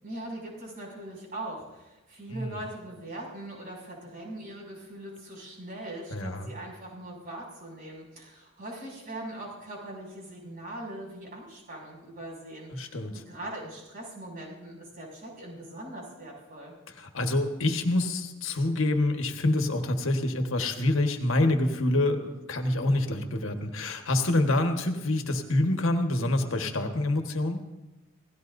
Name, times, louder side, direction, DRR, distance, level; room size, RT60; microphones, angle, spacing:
voice 1, 0.0-16.7, right 1 dB, 45° right, -2 dB, 6.6 m, -41 dB
voice 2, 6.1-6.5 12.7-13.2 16.9-27.6, left 1 dB, 75° left, 5 dB, 1.6 m, -27 dB
29.0 x 17.5 x 2.7 m, 1.0 s
head